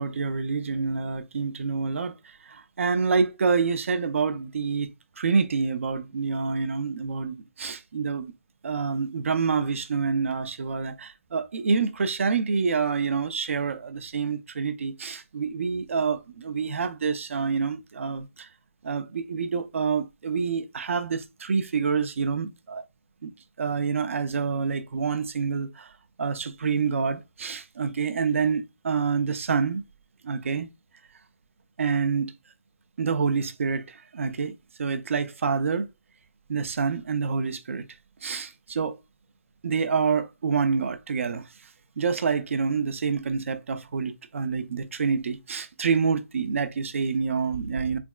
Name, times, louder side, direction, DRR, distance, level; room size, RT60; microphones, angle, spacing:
voice 1, 0.0-8.3 8.6-18.5 18.8-22.8 23.2-23.3 23.6-25.9 26.2-29.8 30.2-30.7 31.8-32.3 33.0-34.5 34.8-35.9 36.5-37.9 38.2-39.0 39.6-41.5 42.0-48.0, right 5 dB, 65° right, 0.6 m, -27 dB
3.5 x 3.4 x 2.3 m
hypercardioid pair, 150°, 8 cm